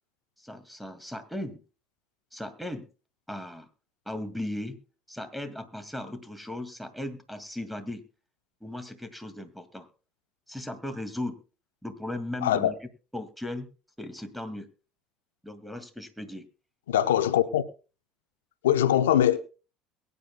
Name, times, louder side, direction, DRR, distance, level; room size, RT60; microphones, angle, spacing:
voice 1, 0.4-1.6 2.3-2.9 3.3-3.7 4.1-4.8 5.1-8.0 8.6-9.9 10.5-11.4 11.8-12.7 13.1-13.7 14.0-14.7 15.4-16.5, left 1 dB, ahead, 2.2 m, -37 dB
voice 2, 12.4-12.7 16.9-17.6 18.6-19.4, left 11 dB, 80° left, 0.8 m, -22 dB
22.5 x 9.6 x 2.2 m
hypercardioid pair, 70°, 0 cm